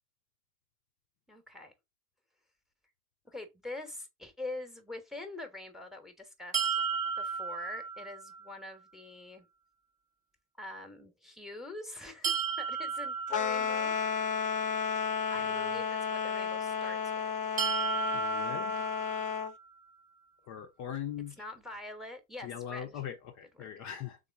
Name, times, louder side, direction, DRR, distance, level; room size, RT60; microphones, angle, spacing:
voice 1, 1.3-1.7 3.2-6.8 7.2-9.5 10.6-14.4 15.3-17.6 21.4-23.0 23.6-23.7, left 2 dB, ahead, 1.0 m, -45 dB
sound 1, 6.5-8.5 12.2-14.3 17.6-19.6, right 6 dB, 15° right, 0.7 m, -34 dB
sound 2, 13.3-19.5, left 6 dB, 20° left, 0.3 m, -32 dB
voice 2, 18.1-18.8 20.5-21.4 22.4-24.2, left 9 dB, 35° left, 0.7 m, -41 dB
3.8 x 3.7 x 3.5 m
figure-of-eight pair, 65°, 47 cm